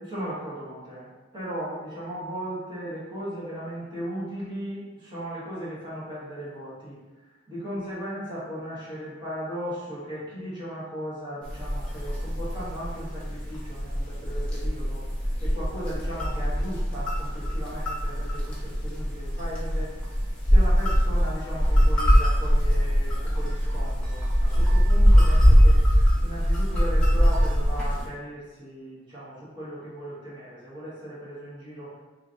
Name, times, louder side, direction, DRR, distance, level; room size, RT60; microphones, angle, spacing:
voice 1, 0.0-7.0 7.2-15.0 15.4-19.9 20.5-25.8 26.2-31.9, equal, 25° right, -10 dB, 1.2 m, -37 dB
sound 1, 11.5-28.0, equal, 5° left, 0.6 m, -22 dB
3.1 x 2.6 x 3.7 m, 1.2 s
head